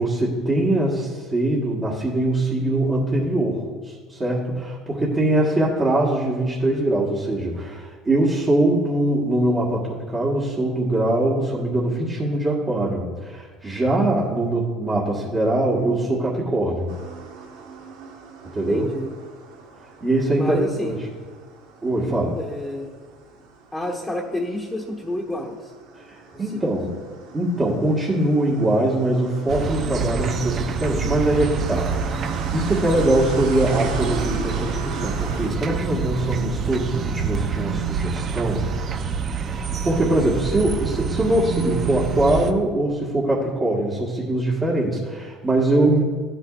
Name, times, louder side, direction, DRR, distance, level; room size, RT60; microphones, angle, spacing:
voice 1, 0.0-16.9 18.5-18.9 20.0-21.0 21.8-22.4 25.9-26.9 27.3-38.7 39.5-46.0, right 1 dB, 25° right, -5 dB, 1.6 m, -22 dB
sound 1, 16.9-35.5, right 4 dB, 80° right, 1.4 m, -39 dB
voice 2, 18.7-19.1 20.3-21.0 22.4-22.9 23.7-25.7 26.3-26.6, left 1 dB, 10° left, -2 dB, 1.2 m, -29 dB
sound 2, 29.5-42.5, right 6 dB, 45° right, 0.6 m, -27 dB
12.0 x 7.8 x 2.5 m, 1.5 s
supercardioid pair, 90°, 0 cm